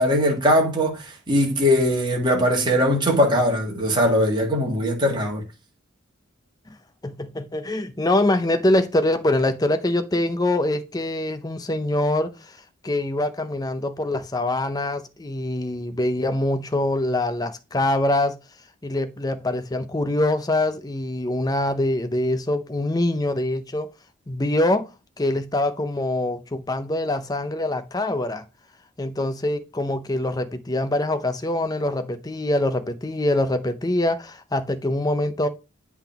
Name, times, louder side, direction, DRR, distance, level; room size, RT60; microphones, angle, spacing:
voice 1, 0.0-5.4, equal, 20° right, 1.7 m, -20 dB
voice 2, 7.0-12.6 12.8-18.4 18.8-23.9 24.3-28.4 29.0-35.5, left 1 dB, 20° left, 0.6 m, -24 dB
8.1 x 3.5 x 5.8 m
head